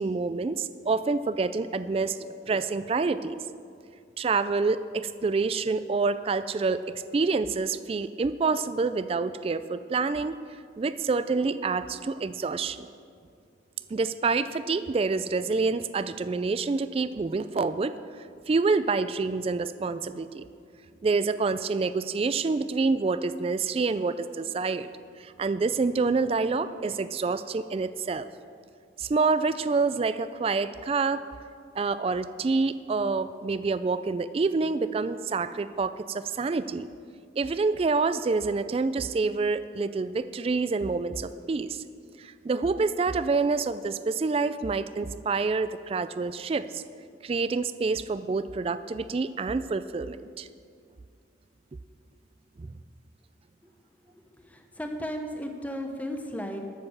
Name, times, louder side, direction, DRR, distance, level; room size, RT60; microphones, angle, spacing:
voice 1, 0.0-3.4 4.2-10.4 10.8-12.9 13.9-17.9 18.5-20.4 21.0-24.9 25.2-28.3 29.0-31.3 31.8-36.9 37.4-41.8 42.2-46.8 47.2-50.5, right 4 dB, 30° right, 13 dB, 0.3 m, -27 dB
voice 2, 54.1-56.7, equal, 10° left, 4 dB, 0.9 m, -35 dB
13.0 x 6.8 x 7.1 m, 2.2 s
head